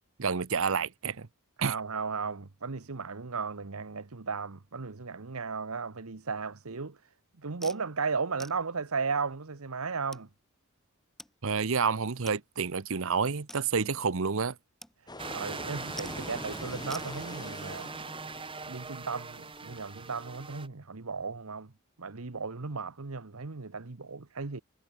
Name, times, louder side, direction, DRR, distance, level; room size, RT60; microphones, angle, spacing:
voice 1, 0.2-1.3 1.6-1.7 11.4-14.6, right 5 dB, 65° right, 0.8 m, -29 dB
voice 2, 1.6-7.0 7.4-10.3 15.0-17.9 18.7-21.7 22.0-24.6, right 4 dB, 80° right, 1.2 m, -35 dB
sound 1, 7.6-7.8 8.4-8.6 9.4-9.5 10.1-10.3 11.2-11.3 11.6-11.7 12.3-12.4 12.8-12.9 13.5-14.0 14.8-15.0 15.2-15.6 16.0-16.4 16.9-17.1, equal, ahead, 6.0 m, -47 dB
sound 2, 15.1-20.6, left 2 dB, 20° left, 5.1 m, -45 dB
sound 3, 15.2-20.7, right 4 dB, 25° right, 1.4 m, -41 dB
head